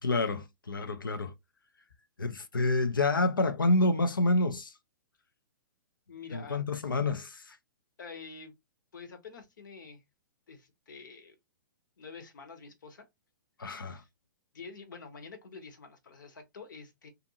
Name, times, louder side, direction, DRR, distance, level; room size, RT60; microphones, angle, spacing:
voice 1, 0.0-1.3 2.2-4.7 6.3-7.6 13.6-14.0, left 2 dB, 85° left, 0.5 m, -28 dB
voice 2, 6.1-6.6 8.0-8.5 8.9-10.0 10.5-11.4 12.0-13.1 13.7-14.1 14.5-17.1, left 5 dB, 70° left, 0.9 m, -47 dB
2.5 x 2.5 x 2.7 m
figure-of-eight pair, 115°, 11 cm